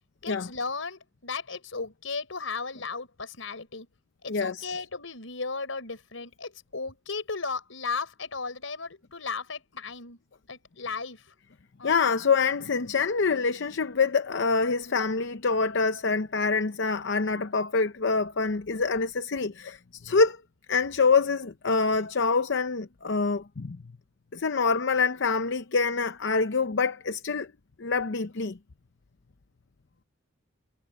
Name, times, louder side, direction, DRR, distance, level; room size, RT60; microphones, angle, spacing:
voice 1, 0.2-3.9 4.2-10.2 10.5-11.3 11.8-12.0, left 4 dB, 85° left, 4.3 m, -35 dB
voice 2, 4.3-4.8 11.8-20.4 20.7-23.8 24.3-27.5 27.8-28.6, left 4 dB, 65° left, 0.7 m, -26 dB
head